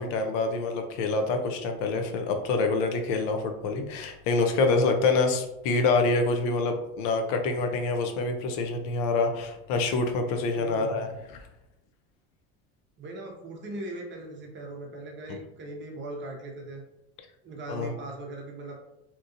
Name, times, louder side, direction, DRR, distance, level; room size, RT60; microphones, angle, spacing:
voice 1, 0.0-11.4 17.7-17.9, left 3 dB, 70° left, 5 dB, 0.6 m, -26 dB
voice 2, 10.5-11.1 13.0-16.8 17.4-18.7, right 2 dB, 30° right, 0 dB, 0.7 m, -39 dB
2.9 x 2.5 x 2.5 m, 0.87 s
supercardioid pair, 125°, 38 cm